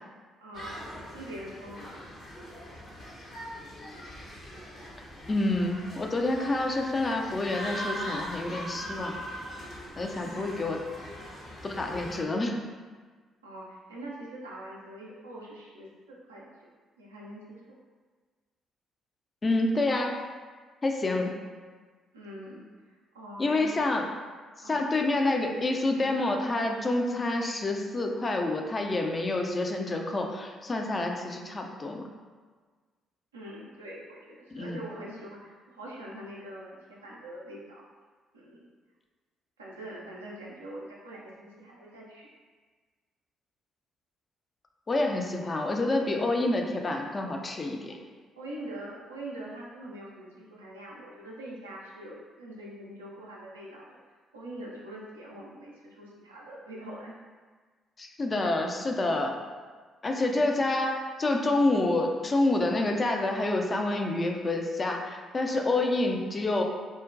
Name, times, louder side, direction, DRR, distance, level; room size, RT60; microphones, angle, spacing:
voice 1, 0.4-2.0 10.2-10.5 13.4-16.5 17.0-17.6 22.1-23.7 24.6-24.9 33.3-37.8 38.3-38.6 39.6-42.3 48.4-54.0 54.3-57.1, right 1 dB, 85° right, -5 dB, 0.4 m, -43 dB
sound 1, 0.5-12.2, equal, 50° left, 0.7 m, -41 dB
voice 2, 5.3-9.1 10.0-10.8 11.6-12.6 19.4-20.2 20.8-21.3 23.4-24.0 24.6-32.0 34.5-34.8 44.9-48.0 58.0-59.3 60.0-66.6, left 2 dB, 30° left, 2 dB, 0.4 m, -28 dB
3.7 x 2.1 x 2.4 m, 1.5 s
figure-of-eight pair, 45°, 0 cm